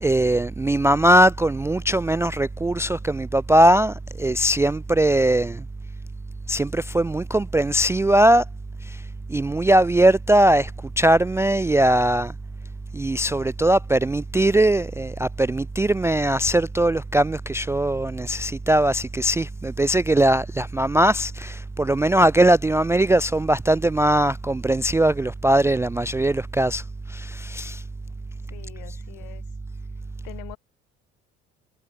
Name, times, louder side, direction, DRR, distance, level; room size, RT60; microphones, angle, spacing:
voice 1, 0.0-5.6 6.5-8.4 8.8-9.0 9.3-10.7 11.0-12.3 12.9-26.8 27.1-27.8, right 1 dB, 10° right, 0.3 m, -20 dB
voice 2, 28.5-29.4 30.2-30.6, left 29 dB, 70° left, 2.7 m, -43 dB
hypercardioid pair, 60°, 34 cm